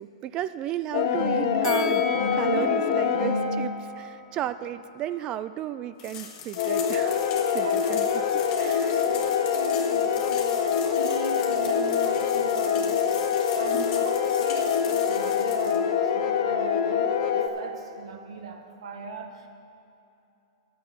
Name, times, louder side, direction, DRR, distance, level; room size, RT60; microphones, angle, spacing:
voice 1, 0.0-7.2 7.5-8.2 8.6-9.0 13.7-13.9, right 11 dB, 25° right, 13 dB, 0.3 m, -33 dB
sound 1, 0.9-3.8 6.6-17.5, left 7 dB, 45° left, 1.1 m, -25 dB
Bell, 1.6-4.8 5.2-5.3, left 7 dB, 85° left, 1.7 m, -38 dB
voice 2, 2.5-2.9 7.6-13.1 13.6-19.5, right 5 dB, 70° right, 5 dB, 1.4 m, -40 dB
sound 2, 6.0-15.8, left 7 dB, 30° left, 1.5 m, -40 dB
12.5 x 9.2 x 6.0 m, 2.9 s
hypercardioid pair, 145°, 3 cm